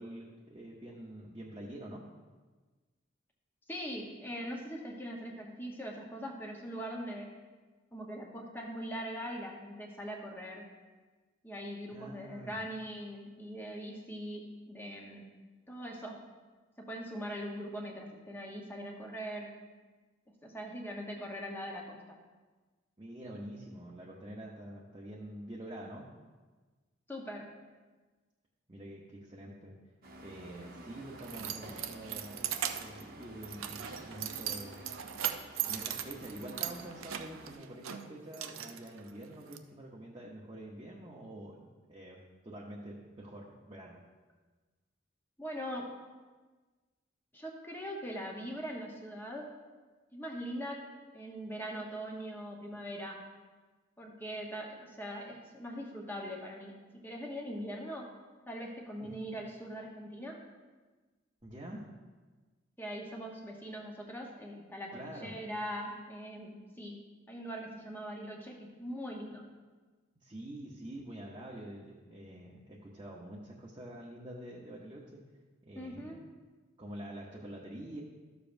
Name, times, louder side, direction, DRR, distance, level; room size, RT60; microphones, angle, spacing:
voice 1, 0.0-2.0 11.9-12.6 23.0-26.0 28.7-29.7 30.2-34.9 35.6-42.2 42.4-44.0 59.0-59.1 61.4-61.8 64.9-65.4 70.2-75.2 75.7-76.1 76.8-78.0, right 1 dB, 25° right, -5 dB, 0.8 m, -46 dB
voice 2, 3.7-7.4 7.9-10.6 11.4-15.4 15.7-16.2 16.8-19.6 20.4-22.2 27.1-27.6 45.4-46.0 47.3-49.5 50.1-50.9 51.1-53.3 54.0-58.1 58.5-60.4 62.8-69.5 75.7-76.2, equal, 10° left, -1 dB, 0.9 m, -41 dB
sound 1, 30.0-37.5, right 2 dB, 45° right, 1.0 m, -52 dB
Keys jangling, 30.5-39.6, right 10 dB, 90° right, 0.5 m, -39 dB
13.0 x 7.0 x 2.6 m, 1.3 s
head